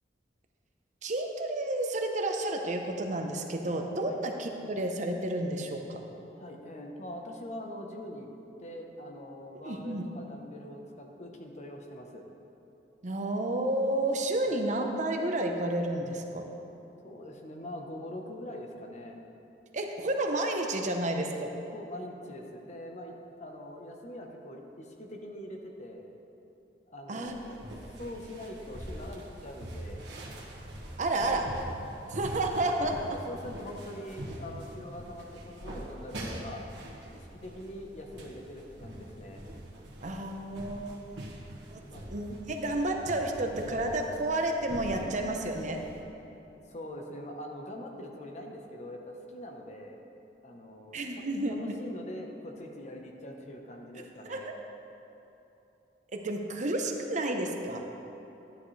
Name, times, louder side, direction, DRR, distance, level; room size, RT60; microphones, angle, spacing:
voice 1, 1.0-6.0 9.6-10.0 13.0-16.5 19.7-21.5 27.1-27.3 31.0-31.5 32.1-33.0 40.0-41.4 41.7-41.8 42.1-45.8 50.9-51.7 54.3-54.5 56.1-57.9, right 1 dB, 45° right, 3 dB, 0.8 m, -31 dB
voice 2, 6.3-8.3 8.6-12.2 14.4-14.6 17.0-19.2 21.7-23.1 23.4-26.1 26.9-27.6 28.0-30.0 32.8-36.6 37.1-39.4 41.9-42.1 46.7-50.0 50.4-51.0 51.5-54.6, left 1 dB, 40° left, 2 dB, 0.9 m, -43 dB
footsteps on wooden floor, 27.3-46.0, right 1 dB, 80° right, 1.6 m, -43 dB
12.5 x 10.5 x 3.3 m, 3.0 s
head